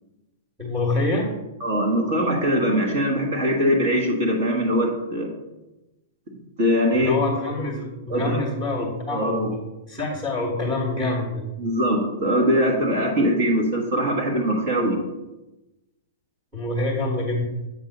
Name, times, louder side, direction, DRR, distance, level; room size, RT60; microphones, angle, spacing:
voice 1, 0.6-1.3 6.9-9.6 9.9-11.4 16.5-17.4, left 2 dB, 10° right, -5 dB, 1.4 m, -26 dB
voice 2, 1.6-5.3 6.6-7.1 7.6-7.7 8.1-8.4 9.1-9.5 11.6-15.0, equal, 40° right, 0 dB, 1.4 m, -22 dB
8.1 x 3.6 x 6.5 m, 1.0 s
hypercardioid pair, 175°, 0 cm